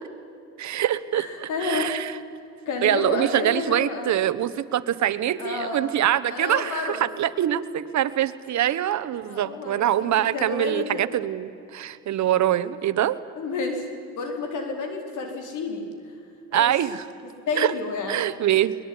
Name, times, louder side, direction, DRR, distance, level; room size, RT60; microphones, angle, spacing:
voice 1, 0.6-2.1 2.8-13.2 16.5-17.1 17.6-17.7 18.1-18.8, right 11 dB, 65° right, 14 dB, 1.2 m, -24 dB
voice 2, 1.1-1.9 2.7-4.1 5.4-5.9 6.3-7.1 9.2-11.1 13.4-13.8 14.2-16.1 16.5-16.8 17.2-18.2, left 4 dB, 80° left, 4 dB, 4.4 m, -30 dB
22.0 x 20.5 x 9.8 m, 2.6 s
cardioid pair, 90°, 30 cm